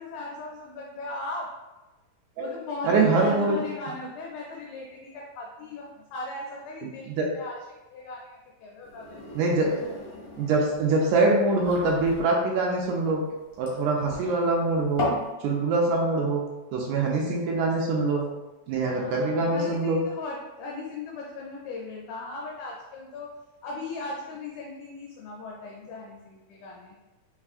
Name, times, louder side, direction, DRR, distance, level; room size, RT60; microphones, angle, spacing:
voice 1, 0.0-1.5 2.4-7.6 7.9-9.2 18.8-23.3 23.6-27.0, left 3 dB, 80° left, -1 dB, 1.8 m, -37 dB
voice 2, 2.8-3.6 7.1-7.3 9.4-9.8 10.4-13.2 13.6-15.0 15.4-16.4 16.7-18.3 18.7-20.0, right 3 dB, 80° right, -1 dB, 1.9 m, -24 dB
sound 1, 8.8-15.3, left 1 dB, 55° left, 1.4 m, -36 dB
4.5 x 4.0 x 2.4 m, 1.1 s
omnidirectional pair, 4.0 m